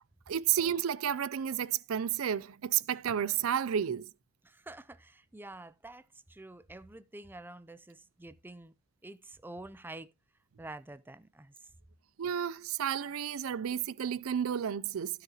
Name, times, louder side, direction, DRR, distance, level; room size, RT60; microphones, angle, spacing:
voice 1, 0.3-4.1 12.2-15.2, right 9 dB, 90° right, 0.4 m, -31 dB
voice 2, 4.4-8.7 9.0-10.1 10.6-11.5, right 2 dB, 10° right, 0.5 m, -48 dB
12.5 x 7.7 x 2.9 m
head